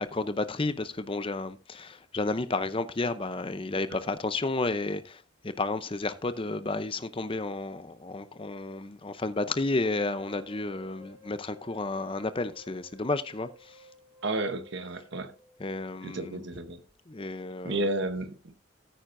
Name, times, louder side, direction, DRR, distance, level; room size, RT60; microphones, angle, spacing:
voice 1, 0.1-13.8 15.6-16.4 17.1-17.8, left 2 dB, 25° left, 0.6 m, -32 dB
sound 1, 9.8-15.8, left 2 dB, 15° right, 4.5 m, -55 dB
voice 2, 14.2-15.3 16.0-16.8 17.6-18.5, right 2 dB, 60° right, 1.0 m, -32 dB
13.5 x 8.9 x 2.6 m
head